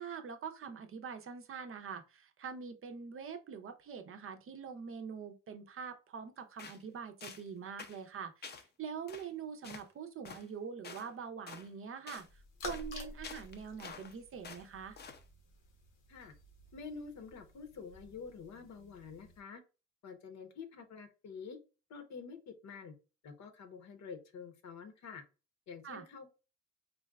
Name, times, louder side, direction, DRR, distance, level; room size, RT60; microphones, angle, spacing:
voice 1, 0.0-15.0 25.8-26.0, right 6 dB, 45° right, 0.6 m, -44 dB
sound 1, 6.6-6.8 7.2-7.5 7.8-8.0 8.4-8.7 9.1-9.3 9.6-9.9 10.2-10.5 10.8-11.1 11.5-11.7 12.1-12.3 12.6-12.9 13.2-14.1 14.4-14.7 15.0-15.2, left 5 dB, 35° left, 0.5 m, -48 dB
sound 2, 12.2-19.4, left 2 dB, 85° left, 1.0 m, -51 dB
voice 2, 16.7-19.6 20.0-21.6 21.9-22.9 23.2-25.2 25.7-26.4, left 5 dB, 65° left, 0.8 m, -48 dB
3.9 x 2.2 x 2.2 m
cardioid pair, 90°, 30 cm